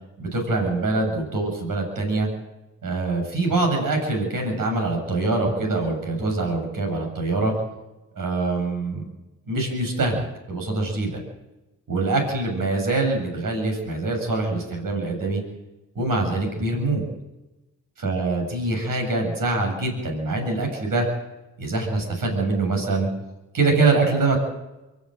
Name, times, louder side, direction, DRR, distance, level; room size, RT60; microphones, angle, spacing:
voice 1, 0.2-2.3 2.8-7.5 8.2-9.1 9.5-11.2 11.9-15.4 15.9-17.0 18.0-21.1 21.6-23.1 23.5-24.4, right 3 dB, 70° right, 2 dB, 7.6 m, -24 dB
24.0 x 13.5 x 9.2 m, 1.0 s
supercardioid pair, 50°, 35 cm